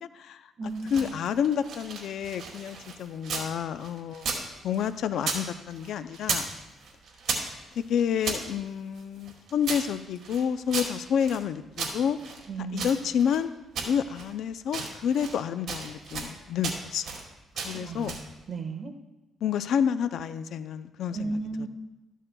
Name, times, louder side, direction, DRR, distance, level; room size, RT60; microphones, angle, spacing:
voice 1, 0.0-6.5 7.8-12.2 12.7-13.5 13.9-17.0 17.6-18.2 19.4-21.4, left 8 dB, 75° left, 12 dB, 0.4 m, -29 dB
voice 2, 0.6-1.1 12.5-13.0 17.8-18.9 21.1-21.7, right 3 dB, 45° right, 5 dB, 1.3 m, -34 dB
sound 1, 0.7-3.5 3.8-5.4 5.7-6.5 6.8-8.4 9.0-11.4 11.8-13.4 13.8-14.3 14.6-15.4 15.7-16.3 16.6-17.2 17.6-18.3, right 4 dB, 65° right, 2.2 m, -35 dB
13.5 x 11.0 x 2.3 m, 1.0 s
cardioid pair, 90°, 0 cm